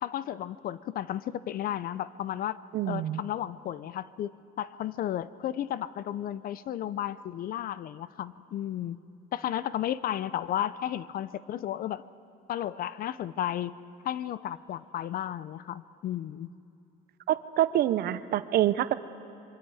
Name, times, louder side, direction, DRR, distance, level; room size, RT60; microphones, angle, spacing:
voice 1, 0.0-2.6 2.9-4.3 4.6-9.0 9.3-12.0 12.5-13.7 14.0-16.5, left 11 dB, 60° left, 17 dB, 0.6 m, -33 dB
voice 2, 2.7-3.2 17.3-18.9, right 12 dB, 65° right, 14 dB, 0.7 m, -26 dB
26.0 x 24.0 x 4.9 m, 2.7 s
cardioid pair, 110°, 17 cm